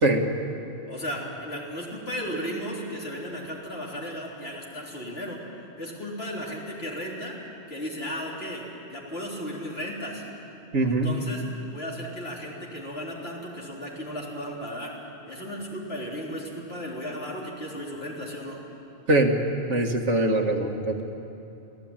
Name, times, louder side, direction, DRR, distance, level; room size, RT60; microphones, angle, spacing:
voice 1, 0.9-5.4 5.8-7.4 7.7-10.2 10.9-11.4 11.7-14.9 15.3-18.6, equal, 60° left, -3 dB, 4.0 m, -35 dB
voice 2, 10.7-11.1 19.1-19.4 19.7-21.0, right 2 dB, 80° right, 3 dB, 2.1 m, -22 dB
26.0 x 17.0 x 9.0 m, 2.9 s
omnidirectional pair, 1.2 m